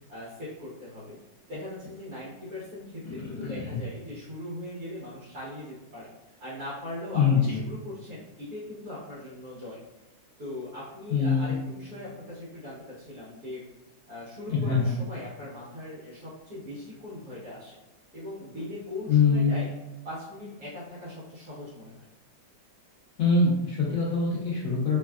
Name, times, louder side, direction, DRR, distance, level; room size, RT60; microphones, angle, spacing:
voice 1, 0.1-1.2 1.5-9.8 10.4-13.6 14.1-17.8 18.1-19.7 20.0-21.9, left 1 dB, 55° right, -10 dB, 1.2 m, -40 dB
voice 2, 3.1-3.8 7.1-7.6 11.1-11.5 14.5-14.9 19.1-19.5 23.2-25.0, left 4 dB, 75° left, -5 dB, 0.8 m, -24 dB
3.3 x 2.3 x 2.2 m, 1.1 s
omnidirectional pair, 2.1 m